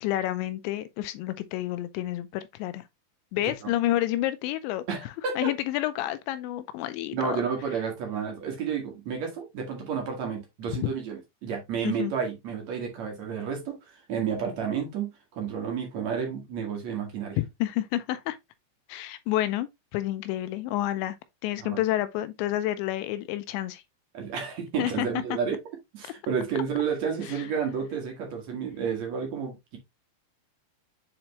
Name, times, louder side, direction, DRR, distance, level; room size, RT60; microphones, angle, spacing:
voice 1, 0.0-2.9 3.3-4.8 5.4-7.4 10.8-10.9 11.8-12.1 17.4-18.4 18.9-21.2 21.4-23.8 24.8-25.4, left 14 dB, 85° left, 2.8 m, -29 dB
voice 2, 4.9-5.3 7.1-17.4 21.6-21.8 24.1-25.6 25.9-29.8, right 7 dB, 55° right, 2.1 m, -31 dB
7.7 x 4.3 x 2.9 m
omnidirectional pair, 5.3 m